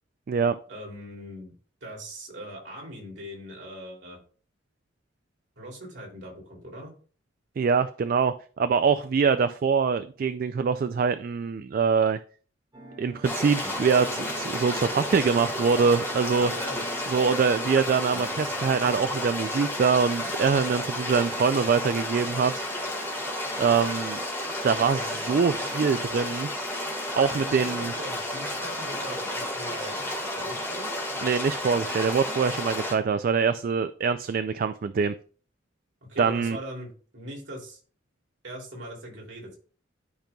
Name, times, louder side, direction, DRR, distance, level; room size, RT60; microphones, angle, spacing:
voice 1, 0.7-1.5 1.8-4.2 5.6-6.9 16.3-16.8 27.2-30.0 30.3-30.9 36.1-37.8 38.4-39.6, right 1 dB, 60° right, -2 dB, 2.8 m, -40 dB
voice 2, 7.6-12.2 13.0-16.5 17.1-22.6 23.6-24.2 24.6-26.5 27.1-27.9 31.2-35.1 36.2-36.6, right 5 dB, 45° right, 11 dB, 0.3 m, -24 dB
sound 1, 12.7-27.3, right 1 dB, 20° right, 2.3 m, -48 dB
sound 2, 13.2-32.9, left 1 dB, 15° left, 1.7 m, -32 dB
12.0 x 5.2 x 2.3 m, 0.41 s
head